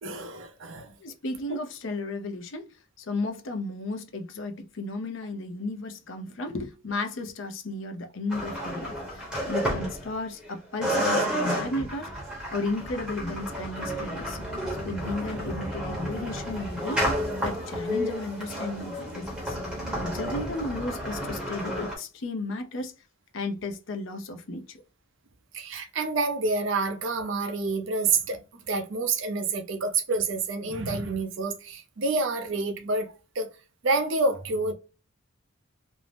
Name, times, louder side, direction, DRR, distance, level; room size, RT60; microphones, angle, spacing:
voice 1, 0.0-0.9 25.5-33.5 33.8-34.7, right 3 dB, 60° right, 0.5 m, -28 dB
voice 2, 1.0-2.7 3.0-12.2 12.5-14.4 14.8-17.1 17.4-19.6 19.9-22.9 23.3-24.8, left 2 dB, 65° left, 0.5 m, -34 dB
sound 1, 8.3-10.5 10.8-22.0, equal, 5° right, 0.8 m, -31 dB
2.6 x 2.0 x 3.2 m
head